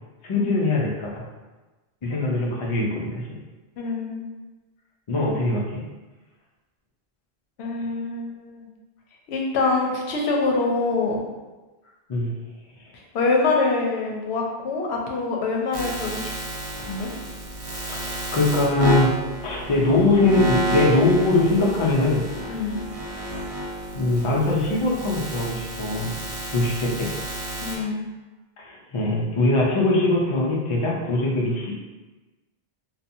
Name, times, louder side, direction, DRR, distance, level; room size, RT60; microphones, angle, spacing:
voice 1, 0.2-1.2 2.0-3.3 5.1-5.8 12.1-12.3 12.8-12.9 17.9-19.1 19.4-22.2 23.9-26.1 26.5-27.1 28.6-31.7, left 2 dB, 55° left, -2 dB, 0.3 m, -22 dB
voice 2, 3.8-4.3 7.6-8.7 9.3-11.3 13.1-16.3 16.9-17.1 22.5-22.9 27.6-28.0, left 3 dB, 85° left, 0 dB, 0.8 m, -25 dB
sound 1, 15.7-27.8, right 1 dB, 45° right, 0.5 m, -30 dB
2.7 x 2.2 x 2.6 m, 1.2 s
omnidirectional pair, 1.1 m